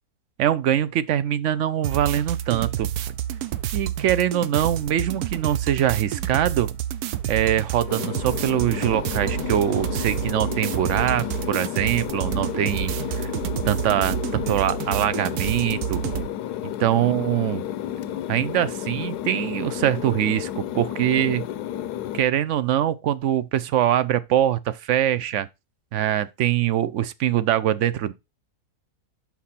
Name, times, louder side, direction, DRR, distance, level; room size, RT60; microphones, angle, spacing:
voice 1, 0.4-2.9 3.7-6.7 7.3-13.3 13.6-16.0 16.6-17.6 18.3-21.5 22.1-25.5 25.9-28.1, right 11 dB, 65° right, 0.8 m, -23 dB
sound 1, 1.8-16.3, right 11 dB, 80° right, 1.2 m, -29 dB
sound 2, 7.9-22.2, left 11 dB, 85° left, 1.2 m, -31 dB
6.2 x 5.9 x 4.2 m
omnidirectional pair, 1.6 m